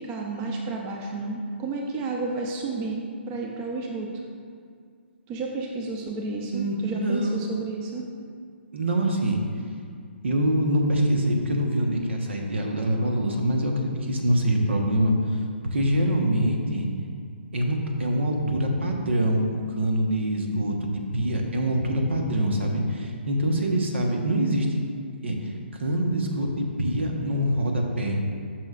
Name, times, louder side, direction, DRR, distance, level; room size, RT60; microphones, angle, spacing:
voice 1, 0.0-4.1 5.3-8.1, right 3 dB, 25° right, 0 dB, 0.6 m, -31 dB
voice 2, 6.5-7.4 8.7-9.4 10.2-15.1 15.7-16.9 17.5-24.7 25.2-28.2, right 1 dB, 70° right, 1 dB, 1.2 m, -24 dB
10.5 x 6.2 x 2.5 m, 2.2 s
hypercardioid pair, 140°, 6 cm